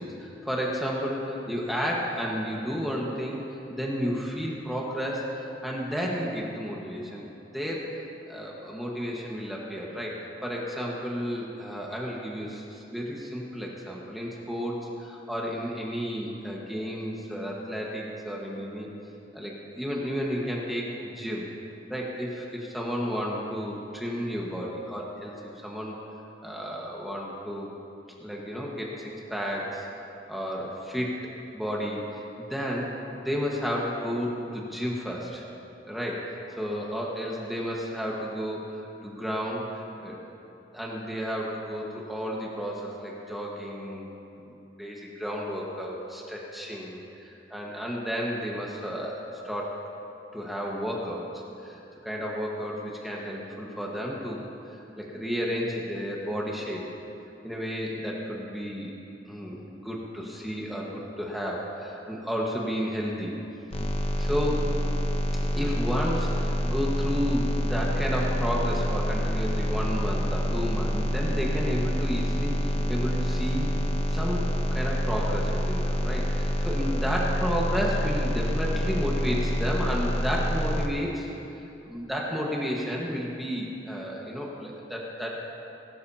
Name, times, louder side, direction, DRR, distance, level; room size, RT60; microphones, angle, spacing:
voice 1, 0.0-7.3 7.5-8.0 8.3-18.9 19.3-21.5 21.9-25.3 25.6-26.0 26.4-27.7 28.2-29.9 30.3-31.2 31.5-32.9 33.2-35.4 35.9-40.2 40.7-44.0 44.4-44.5 44.8-49.8 50.3-51.3 51.6-54.4 55.0-56.8 57.4-58.9 59.3-63.4 64.1-64.6 65.6-73.8 74.1-81.3 81.8-85.3, equal, ahead, -4 dB, 1.4 m, -32 dB
sound 1, 63.7-80.9, equal, 35° left, 0.8 m, -27 dB
20.5 x 12.5 x 2.8 m, 2.9 s
head